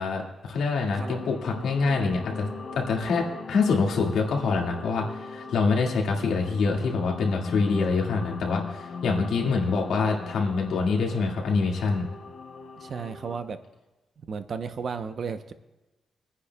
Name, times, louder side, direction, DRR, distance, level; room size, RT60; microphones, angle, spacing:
voice 1, 0.0-2.5 2.7-12.1, left 4 dB, 85° left, -1 dB, 1.9 m, -25 dB
sound 1, 0.9-13.4, left 5 dB, 55° left, 1.1 m, -39 dB
voice 2, 12.8-13.6 14.3-15.5, right 6 dB, 45° right, 9 dB, 0.7 m, -34 dB
28.5 x 9.9 x 2.3 m, 1.1 s
wide cardioid pair, 150°, 0 cm